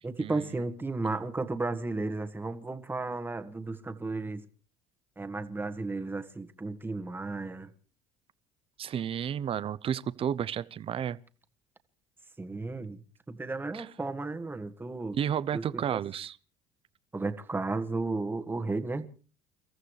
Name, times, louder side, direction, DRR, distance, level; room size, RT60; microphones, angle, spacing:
voice 1, 0.0-4.5 5.2-7.7 12.4-15.2 15.5-16.0 17.1-19.1, right 3 dB, 15° right, 1.8 m, -34 dB
voice 2, 8.8-11.2 13.7-13.9 15.1-16.4, right 9 dB, 40° right, 0.8 m, -32 dB
30.0 x 14.0 x 3.3 m
supercardioid pair, 80°, 14 cm